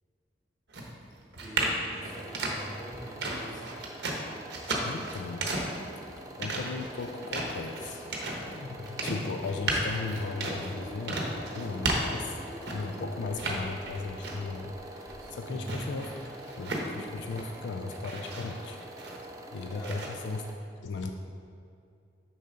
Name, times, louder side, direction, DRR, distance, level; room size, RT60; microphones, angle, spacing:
sound 1, 0.7-13.0 13.3-14.6 14.9-17.6 17.9-19.4 19.8-20.1, right 2 dB, 70° right, 0.9 m, -34 dB
voice 1, 1.4-3.6 15.5-15.9 19.8-20.1, equal, 20° left, -4 dB, 1.2 m, -42 dB
sound 2, 1.5-15.3, left 1 dB, 40° left, 1.6 m, -49 dB
sound 3, 2.0-20.5, right 1 dB, 20° right, 0.4 m, -46 dB
voice 2, 4.8-5.6 6.0-6.1 6.4-12.4 12.7-14.7 15.3-16.1 16.4-18.8 19.5-20.4 20.8-21.1, left 3 dB, 75° left, 5 dB, 0.4 m, -37 dB
6.6 x 5.6 x 3.7 m, 2.5 s
head